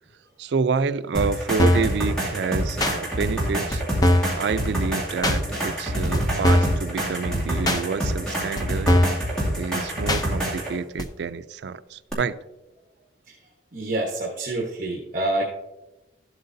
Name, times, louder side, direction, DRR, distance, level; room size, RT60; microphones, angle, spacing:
voice 1, 0.4-3.8 4.3-9.0 9.6-12.4, right 5 dB, 65° right, 14 dB, 0.4 m, -28 dB
sound 1, 1.1-10.7 12.1-12.2, right 1 dB, 5° left, 2.3 m, -27 dB
sound 2, 1.6-1.9 2.8-3.0 3.7-3.8 4.0-4.4 5.2-5.4 6.1-6.2 6.4-6.8 7.7-7.8 8.6-8.7 8.9-9.2 10.1-10.2 11.0-11.1, left 1 dB, 20° left, 0.6 m, -20 dB
voice 2, 13.7-15.5, right 2 dB, 45° right, 0 dB, 1.1 m, -27 dB
13.0 x 7.8 x 2.6 m, 1.0 s
head